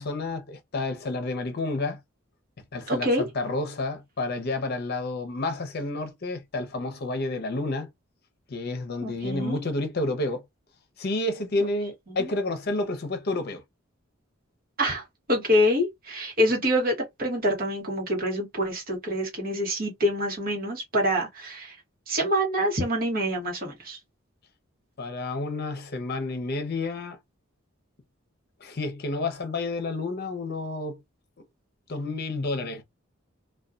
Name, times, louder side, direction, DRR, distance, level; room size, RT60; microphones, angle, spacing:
voice 1, 0.0-2.0 2.7-7.9 8.5-10.4 11.0-13.6 25.0-27.2 28.6-31.0 31.9-32.8, left 2 dB, 50° left, 0.6 m, -30 dB
voice 2, 2.9-3.2 9.0-9.6 12.2-12.3 14.8-21.8 22.1-24.0, equal, 45° right, 1.1 m, -26 dB
2.6 x 2.2 x 2.3 m
head